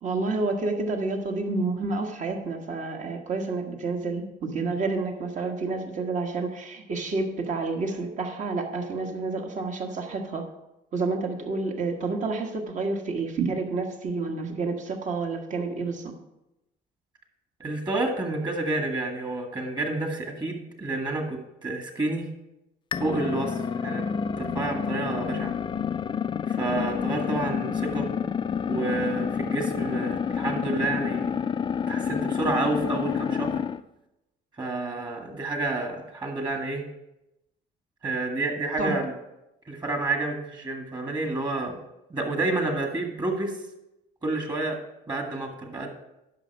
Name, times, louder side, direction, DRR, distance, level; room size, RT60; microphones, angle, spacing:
voice 1, 0.0-10.5 10.9-16.1 38.8-38.9, right 3 dB, 45° right, 3 dB, 1.5 m, -29 dB
voice 2, 17.6-22.3 22.9-24.0 24.4-25.5 26.5-28.1 28.7-31.3 31.9-33.6 34.6-36.8 38.0-39.1 39.7-41.8 42.1-43.6 44.2-44.8 45.1-45.9, right 2 dB, 25° right, 3 dB, 1.9 m, -29 dB
sound 1, 22.9-33.8, left 7 dB, 30° left, 0.4 m, -29 dB
10.5 x 6.3 x 4.7 m, 0.90 s
cardioid pair, 110°, 17 cm